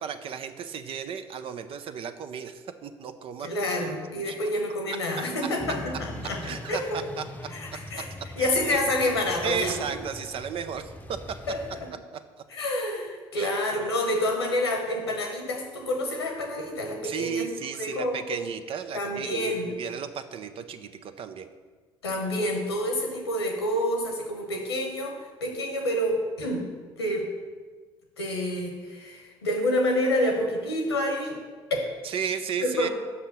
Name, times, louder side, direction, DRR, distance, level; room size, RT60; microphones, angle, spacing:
voice 1, 0.0-3.5 4.3-4.4 5.2-5.3 6.4-7.2 8.4-8.8 9.4-11.4 12.1-12.2 13.4-13.5 14.0-14.1 17.0-21.5 32.0-32.9, right 7 dB, 45° right, 9 dB, 0.6 m, -34 dB
voice 2, 3.4-7.0 7.5-8.0 8.4-10.0 11.5-11.9 12.5-17.5 17.8-18.5 18.9-19.7 22.0-26.7 27.0-27.3 28.2-31.4 31.7-31.9 32.6-32.9, left 1 dB, 80° left, 2 dB, 1.2 m, -28 dB
sound 1, 5.6-11.9, left 1 dB, 10° left, 0.7 m, -41 dB
6.2 x 5.6 x 6.8 m, 1.4 s
figure-of-eight pair, 55°, 13 cm